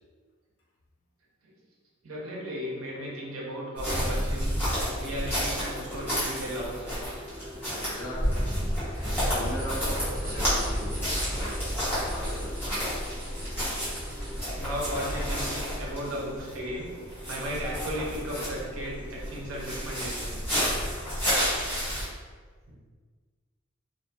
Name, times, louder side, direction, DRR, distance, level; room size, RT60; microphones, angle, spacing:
voice 1, 2.0-4.5 4.9-7.2 14.1-16.9 17.3-20.5 22.7-22.8, equal, 90° right, -3 dB, 0.7 m, -36 dB
sound 1, 2.2-20.2, left 1 dB, 65° right, 0.9 m, -46 dB
sound 2, 3.8-22.0, equal, 10° left, 1.0 m, -31 dB
voice 2, 4.3-4.9 7.7-8.4 9.1-11.6 11.9-12.8, equal, 85° left, -5 dB, 0.7 m, -39 dB
sound 3, 8.9-14.5, equal, 15° right, 0.7 m, -42 dB
2.5 x 2.2 x 2.7 m, 1.5 s
head